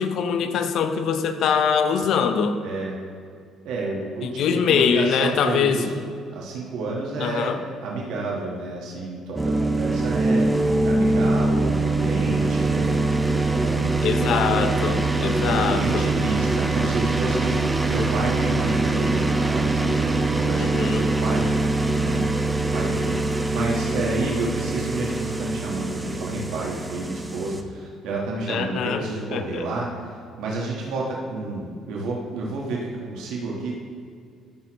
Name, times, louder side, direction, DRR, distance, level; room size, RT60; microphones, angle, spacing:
voice 1, 0.0-2.6 4.4-5.8 7.2-7.6 14.0-16.0 20.6-21.0 28.5-29.0 29.3-29.7, left 7 dB, 60° left, 9 dB, 0.5 m, -23 dB
voice 2, 2.6-3.0 3.6-7.6 7.8-12.9 13.5-22.3 22.7-33.7, right 2 dB, 85° right, -3 dB, 1.3 m, -30 dB
sound 1, 9.4-27.6, right 2 dB, 10° right, 0.4 m, -23 dB
13.0 x 6.2 x 3.0 m, 2.2 s
cardioid pair, 140°, 0 cm